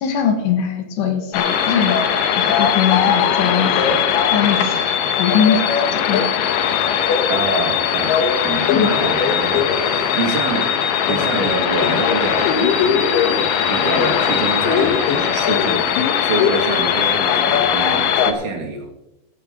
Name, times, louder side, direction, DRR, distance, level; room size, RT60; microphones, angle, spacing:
voice 1, 0.0-2.0 2.4-4.0 4.3-6.2 8.7-8.9, left 7 dB, 90° left, 4 dB, 3.7 m, -21 dB
sound 1, 1.3-18.3, left 8 dB, 70° left, 2.2 m, -19 dB
voice 2, 7.3-10.8 11.1-13.1 13.3-15.9 16.2-18.9, right 3 dB, 55° right, -2 dB, 3.5 m, -26 dB
15.5 x 14.5 x 3.0 m, 0.97 s
omnidirectional pair, 4.7 m